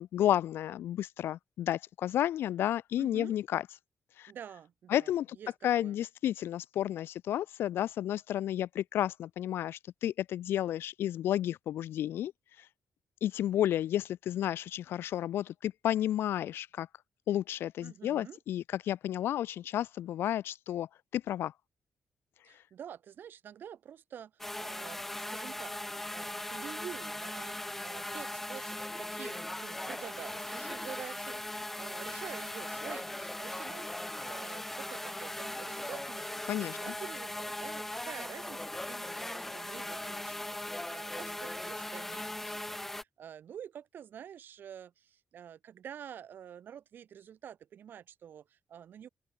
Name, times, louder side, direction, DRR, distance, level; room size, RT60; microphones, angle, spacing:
voice 1, 0.0-3.6 4.2-4.3 4.9-5.3 5.6-12.3 13.2-16.9 17.3-21.5 36.5-36.8, left 12 dB, 75° left, 0.4 m, -32 dB
voice 2, 3.0-3.4 4.3-6.0 17.8-18.4 22.4-24.3 24.6-25.0 25.3-25.7 26.1-49.1, right 9 dB, 55° right, 3.2 m, -48 dB
sound 1, 24.4-43.0, left 1 dB, 5° left, 0.8 m, -39 dB
open air
wide cardioid pair, 160°, 4 cm